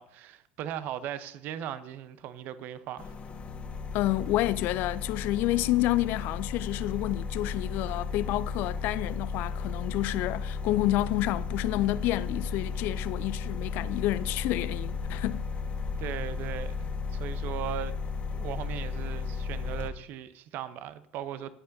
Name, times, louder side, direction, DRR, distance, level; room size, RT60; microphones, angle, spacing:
voice 1, 0.0-3.1 16.0-17.9 18.3-21.5, right 10 dB, 50° right, 0.8 m, -38 dB
sound 1, 3.0-19.9, left 4 dB, 30° left, 1.6 m, -34 dB
voice 2, 3.9-15.4, left 16 dB, 50° left, 0.5 m, -29 dB
21.5 x 8.5 x 2.7 m
figure-of-eight pair, 70°, 4 cm